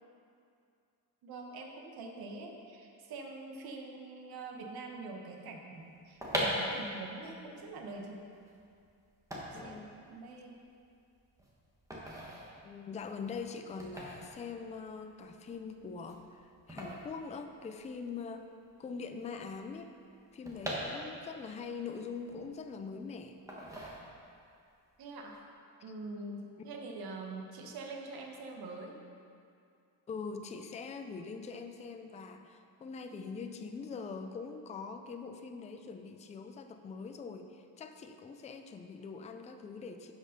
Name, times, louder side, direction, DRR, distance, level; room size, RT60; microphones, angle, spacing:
voice 1, 1.2-8.3 9.5-9.8 10.0-10.6 25.0-25.4 25.8-29.0, right 3 dB, 70° right, 1 dB, 1.3 m, -44 dB
sound 1, 5.9-18.1 18.3-18.4 18.6-21.5 21.9-22.9 23.5-24.5 24.8-25.1, equal, 10° right, 1.4 m, -41 dB
voice 2, 9.5-9.9 12.6-18.5 18.8-19.9 20.3-23.4 30.1-40.1, left 5 dB, 20° left, 6 dB, 0.4 m, -43 dB
12.0 x 5.4 x 5.1 m, 2.4 s
cardioid pair, 160°, 39 cm